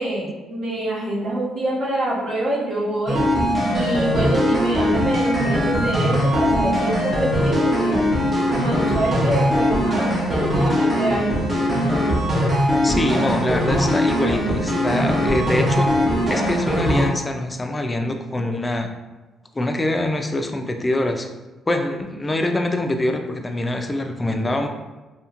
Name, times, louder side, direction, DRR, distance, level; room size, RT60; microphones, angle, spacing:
voice 1, 0.0-3.2 3.7-8.0 8.5-11.5, right 1 dB, 60° right, -5 dB, 0.9 m, -26 dB
sound 1, 3.1-17.1, equal, 30° right, 0.7 m, -20 dB
voice 2, 12.8-15.9 16.3-18.9 19.5-21.3 21.7-24.7, left 1 dB, 20° left, 5 dB, 0.3 m, -24 dB
2.8 x 2.4 x 2.8 m, 1.1 s
cardioid pair, 90°, 0 cm